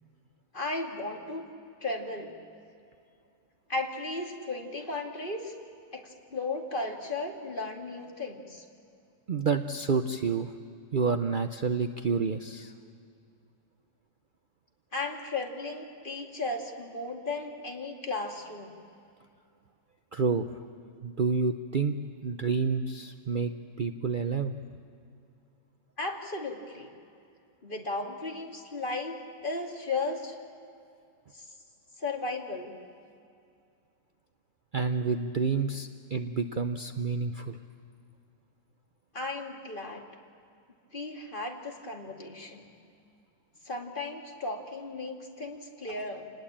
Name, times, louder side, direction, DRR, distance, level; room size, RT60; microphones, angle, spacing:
voice 1, 0.5-1.5 1.8-2.3 3.7-5.5 5.9-8.6 14.9-18.7 26.0-26.9 27.6-30.3 31.3-31.4 32.0-32.7 39.1-40.0 40.9-42.7 43.6-46.3, left 3 dB, 30° left, 1 dB, 2.3 m, -35 dB
voice 2, 9.3-10.5 10.9-12.7 20.1-20.5 21.0-22.0 22.2-23.5 23.8-24.5 34.7-37.6, right 5 dB, 70° right, 8 dB, 0.4 m, -29 dB
28.5 x 20.0 x 8.7 m, 2.4 s
omnidirectional pair, 1.9 m